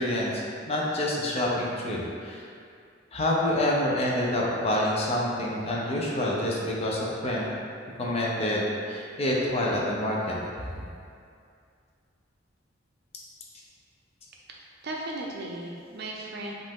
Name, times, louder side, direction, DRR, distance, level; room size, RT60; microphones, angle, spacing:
voice 1, 0.0-2.4 3.1-7.4 8.0-10.4, left 1 dB, 35° left, -4 dB, 0.7 m, -27 dB
voice 2, 14.5-16.5, right 2 dB, 60° right, -1 dB, 0.6 m, -36 dB
5.3 x 2.6 x 3.7 m, 2.3 s
head